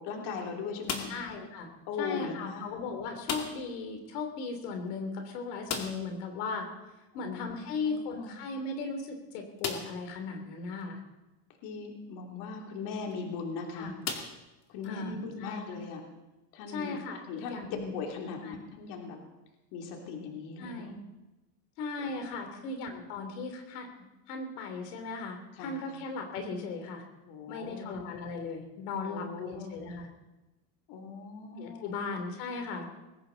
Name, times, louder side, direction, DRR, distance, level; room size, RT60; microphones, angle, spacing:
voice 1, 0.0-1.1 1.9-2.6 7.1-7.5 7.8-8.3 11.6-13.9 14.7-16.0 16.5-17.0 17.3-19.2 19.7-20.9 22.5-22.6 25.6-26.0 27.3-28.0 29.0-29.7 30.9-31.9, left 5 dB, 60° left, 1 dB, 3.1 m, -39 dB
sound 1, 0.8-1.4 3.2-3.8 4.0-4.1 4.5-4.6 5.6-6.2 8.0-8.1 8.7-8.8 9.6-10.1 10.8-10.9 12.9-13.1 14.0-14.9, left 5 dB, 35° left, 2.4 m, -37 dB
voice 2, 1.1-1.7 2.0-6.7 7.1-11.0 13.8-13.9 14.8-15.6 16.7-17.9 18.4-18.6 20.6-21.0 21.8-23.9 24.3-27.0 27.5-30.1 31.6-32.9, left 4 dB, 80° left, 4 dB, 3.2 m, -37 dB
20.5 x 17.0 x 4.0 m, 1.0 s
supercardioid pair, 145°, 46 cm